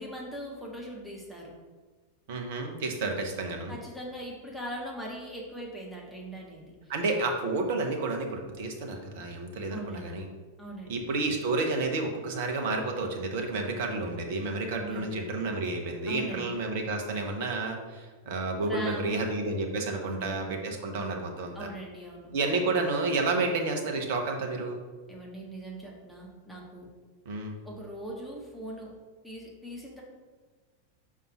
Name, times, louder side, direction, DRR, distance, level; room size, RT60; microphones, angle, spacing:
voice 1, 0.0-1.5 3.7-6.7 9.7-10.2 10.6-11.1 14.7-15.2 16.1-16.6 18.6-19.3 20.0-20.5 21.5-22.3 25.1-26.9 27.6-28.9 29.2-30.0, right 1 dB, ahead, -3 dB, 1.4 m, -40 dB
voice 2, 2.3-3.7 6.9-10.3 10.9-21.7 22.3-24.8 27.2-27.6, right 3 dB, 50° right, 3 dB, 1.0 m, -30 dB
5.4 x 3.6 x 5.8 m, 1.4 s
figure-of-eight pair, 90°, 0 cm